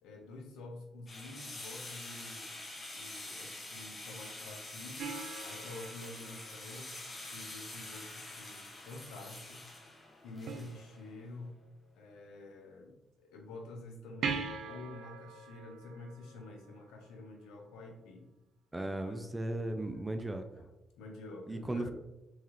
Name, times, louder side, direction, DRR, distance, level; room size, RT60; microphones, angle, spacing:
voice 1, 0.0-2.6 2.9-5.1 5.4-7.0 7.3-9.6 10.2-11.5 11.9-18.3 18.9-19.3 19.6-20.0 20.3-20.7 21.0-21.9, left 2 dB, 90° left, 2 dB, 0.7 m, -49 dB
sound 1, 1.1-11.1, left 2 dB, 40° left, 1.1 m, -46 dB
sound 2, 5.0-7.6 10.5-11.4 14.2-17.1 20.2-20.3, right 5 dB, 75° right, 0.4 m, -42 dB
voice 2, 18.7-20.5 21.5-21.9, right 1 dB, 15° right, 7 dB, 0.4 m, -36 dB
3.7 x 3.1 x 3.1 m, 0.96 s
supercardioid pair, 60°, 0 cm